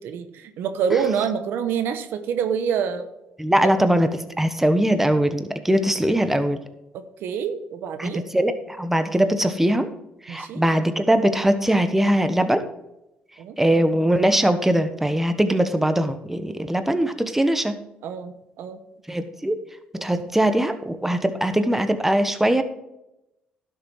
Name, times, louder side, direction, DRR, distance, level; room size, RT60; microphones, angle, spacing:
voice 1, 0.0-3.1 3.6-3.7 6.1-6.2 6.9-8.2 10.3-10.6 13.4-13.5 18.0-18.8, right 7 dB, 75° right, 10 dB, 0.9 m, -27 dB
voice 2, 3.4-6.6 8.0-9.9 10.2-12.6 13.6-17.8 19.1-19.5 20.0-22.6, right 1 dB, 10° right, 9 dB, 1.2 m, -21 dB
11.5 x 6.9 x 4.7 m, 0.89 s
supercardioid pair, 65°, 4 cm